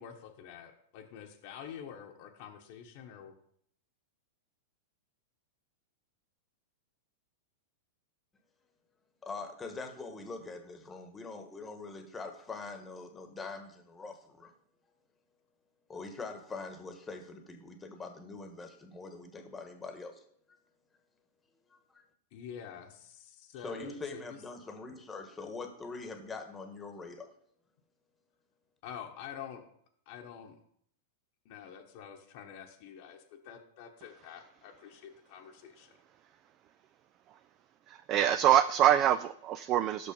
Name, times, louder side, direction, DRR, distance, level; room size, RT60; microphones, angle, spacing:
voice 1, 0.0-3.3 22.3-24.4 28.8-29.7 30.1-30.6 31.4-36.0, left 8 dB, 55° left, 2 dB, 1.0 m, -47 dB
voice 2, 9.2-14.5 15.9-20.2 21.9-22.0 23.6-27.3, left 3 dB, 15° left, 6 dB, 1.2 m, -43 dB
voice 3, 38.1-40.1, right 11 dB, 40° right, 14 dB, 0.3 m, -25 dB
6.1 x 5.4 x 5.2 m, 0.65 s
hypercardioid pair, 110°, 0 cm